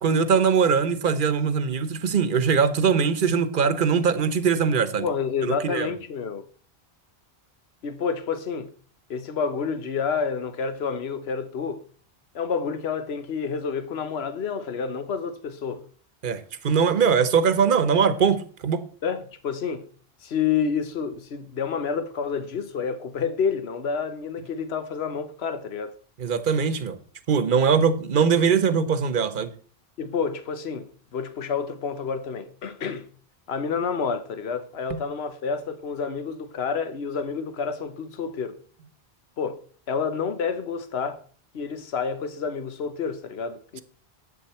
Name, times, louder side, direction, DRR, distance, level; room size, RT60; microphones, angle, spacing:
voice 1, 0.0-5.1 5.4-5.9 16.2-18.8 26.2-27.0 27.3-29.5 34.9-35.0, right 6 dB, 50° right, 1.1 m, -21 dB
voice 2, 5.0-6.5 7.8-8.7 9.1-11.8 12.3-15.8 19.0-19.9 20.2-25.9 30.0-33.1 33.5-38.6 39.4-39.6 39.9-41.2 41.5-43.8, left 6 dB, 75° left, 1.2 m, -29 dB
11.0 x 8.3 x 4.3 m
omnidirectional pair, 1.1 m